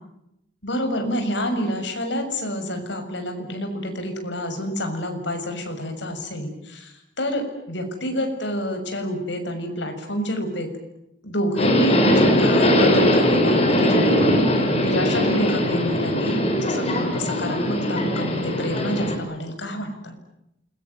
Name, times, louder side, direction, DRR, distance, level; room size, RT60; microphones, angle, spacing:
voice 1, 0.6-10.7 11.2-14.4 14.8-20.1, equal, 65° left, 6 dB, 6.7 m, -28 dB
Subway metro underground, 11.6-19.2, equal, 30° left, 5.8 m, -20 dB
28.5 x 22.5 x 9.4 m, 0.83 s
head